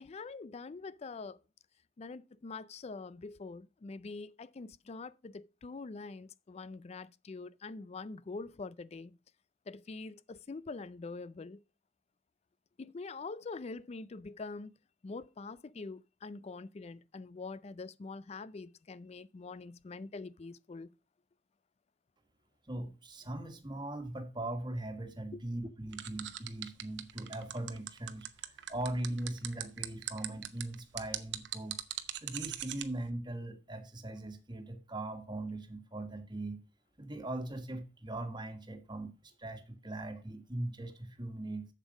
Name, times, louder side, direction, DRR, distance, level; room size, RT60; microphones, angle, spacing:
voice 1, 0.0-1.4 2.0-9.1 9.7-11.6 12.8-14.7 15.0-20.9 25.3-25.4, left 3 dB, 35° left, 0.4 m, -44 dB
voice 2, 22.7-31.8 32.2-36.6 37.0-39.1 39.4-41.7, right 1 dB, 25° right, 1.5 m, -40 dB
sound 1, 25.9-32.8, right 12 dB, 70° right, 0.8 m, -39 dB
7.4 x 7.1 x 5.2 m
head